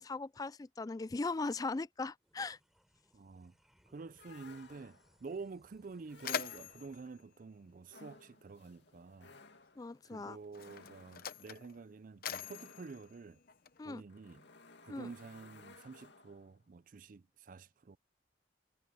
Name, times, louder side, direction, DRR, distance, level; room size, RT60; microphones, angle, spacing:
voice 1, 0.0-2.6 9.8-10.4 13.8-14.0 14.9-15.1, left 3 dB, 20° left, 0.3 m, -39 dB
sound 1, 2.2-8.9, equal, ahead, 3.9 m, -71 dB
voice 2, 3.1-3.5 3.9-9.3 10.0-13.4 13.9-14.4 14.8-18.0, right 4 dB, 50° right, 0.4 m, -49 dB
sound 2, 4.2-5.3 6.1-7.1 7.9-16.6, left 3 dB, 75° left, 2.2 m, -59 dB
Mechanisms, 5.3-5.4 5.7-8.5 9.5-9.6 10.4-14.0, left 7 dB, 55° left, 0.9 m, -44 dB
head